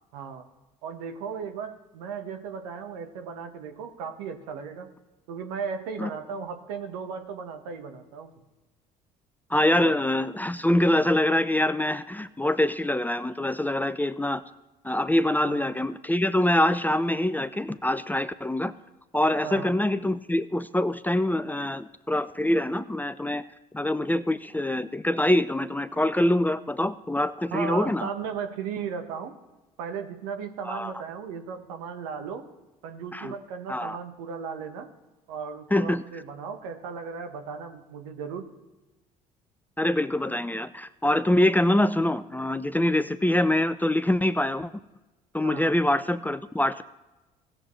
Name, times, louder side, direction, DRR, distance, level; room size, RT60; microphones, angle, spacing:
voice 1, 0.1-0.5 0.8-4.9 5.3-8.3 9.7-9.9 15.4-15.6 19.4-19.8 27.5-29.3 29.8-32.5 32.8-34.9 35.3-38.5 45.4-45.7, right 6 dB, 70° right, 7 dB, 1.2 m, -36 dB
voice 2, 9.5-14.4 14.8-18.8 19.1-23.4 23.7-28.1 30.6-30.9 33.1-33.3 33.7-34.0 35.7-36.0 39.8-44.7 45.3-46.8, left 1 dB, 10° left, 13 dB, 0.5 m, -24 dB
18.0 x 7.6 x 3.2 m, 1.1 s
hypercardioid pair, 55°, 20 cm